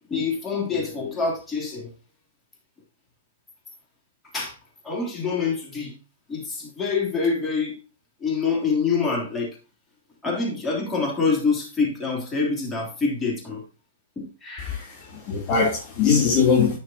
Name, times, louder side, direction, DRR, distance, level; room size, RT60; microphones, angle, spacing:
voice 1, 0.1-1.9 4.3-4.5 4.8-5.9 6.3-7.8 8.2-9.5 10.2-13.6 14.2-15.1, left 4 dB, 15° left, 3.2 m, -26 dB
voice 2, 14.6-16.8, left 6 dB, 40° left, 2.9 m, -21 dB
10.0 x 6.5 x 2.9 m
hypercardioid pair, 130°, 0 cm